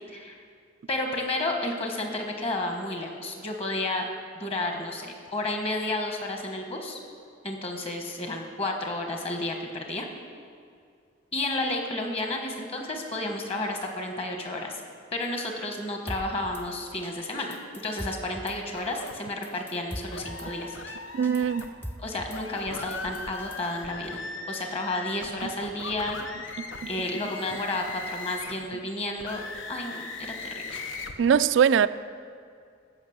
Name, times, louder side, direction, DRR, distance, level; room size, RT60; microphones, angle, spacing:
voice 1, 0.9-4.1 4.3-7.0 7.4-10.1 11.3-14.8 15.1-17.6 17.8-20.8 22.0-24.2 24.5-26.2 26.8-29.4 29.7-30.8, left 2 dB, 30° left, 2 dB, 1.3 m, -31 dB
Drum kit / Snare drum, 16.1-16.6 17.0-17.1 17.4-18.6 18.9-19.2 19.4-20.5 20.9-21.0 21.2-22.4 22.8-23.7, equal, 10° left, 0.6 m, -40 dB
sound 1, 18.7-19.1 20.1-21.7 22.2-28.6 29.2-31.1, left 3 dB, 80° left, 0.9 m, -39 dB
voice 2, 21.1-21.7 31.2-31.9, right 7 dB, 70° right, 13 dB, 0.3 m, -21 dB
14.0 x 6.0 x 8.0 m, 2.3 s
head